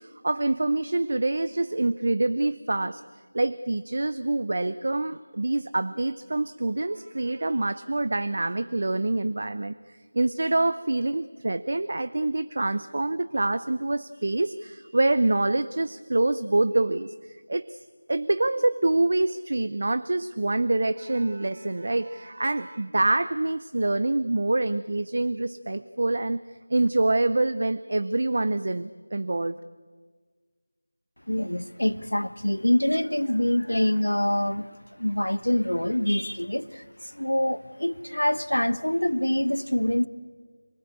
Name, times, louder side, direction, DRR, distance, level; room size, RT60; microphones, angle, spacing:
voice 1, 0.0-3.0 3.3-17.8 18.1-26.4 26.7-29.6, right 2 dB, 45° right, 14 dB, 0.7 m, -26 dB
voice 2, 31.3-40.1, left 1 dB, 80° left, 15 dB, 1.1 m, -25 dB
27.0 x 19.5 x 8.5 m, 1.5 s
figure-of-eight pair, 170°, 0 cm